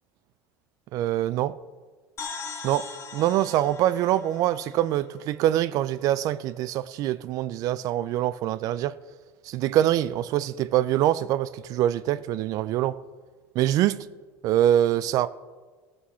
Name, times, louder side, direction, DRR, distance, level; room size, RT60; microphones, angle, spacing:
voice 1, 0.9-1.6 2.6-9.0 9.4-13.0 13.6-14.1 14.4-15.3, right 12 dB, 55° right, 0.4 m, -24 dB
sound 1, 2.2-5.8, left 5 dB, 45° left, 1.7 m, -40 dB
15.5 x 7.6 x 4.3 m
supercardioid pair, 110°, 7 cm